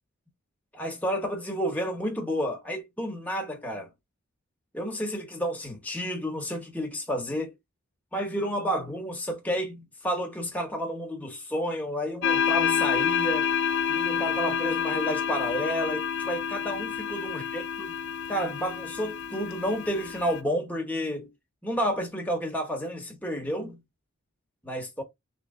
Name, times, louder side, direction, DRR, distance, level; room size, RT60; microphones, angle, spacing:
voice 1, 0.7-3.9 4.7-7.5 8.1-13.5 13.9-17.6 18.3-21.3 21.6-23.8 24.6-25.0, equal, 5° left, 1.0 m, -31 dB
sound 1, 12.2-20.4, left 8 dB, 55° left, 0.5 m, -28 dB
3.2 x 3.1 x 3.6 m
head